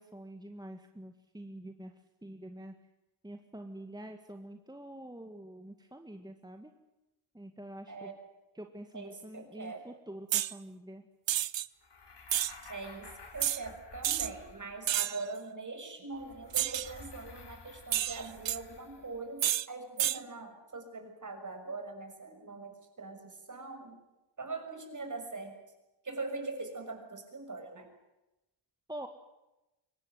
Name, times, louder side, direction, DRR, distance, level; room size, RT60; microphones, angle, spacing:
voice 1, 0.0-2.7 3.2-6.7 7.3-8.1 8.5-11.1 28.9-29.1, right 1 dB, 10° right, 5 dB, 2.0 m, -46 dB
voice 2, 8.9-9.8 12.7-24.0 24.4-25.6 26.0-27.9, right 3 dB, 40° right, 5 dB, 6.3 m, -42 dB
sound 1, 10.3-10.5 11.3-11.7 12.3-12.5 13.4-13.6 14.0-14.3 14.9-15.2 16.5-16.9 17.9-18.6 19.4-19.7 20.0-20.2, right 12 dB, 75° right, 0.8 m, -30 dB
sound 2, 11.8-15.1 16.1-19.3, left 4 dB, 65° left, 4.3 m, -52 dB
24.0 x 19.0 x 9.4 m, 0.97 s
cardioid pair, 80°, 45 cm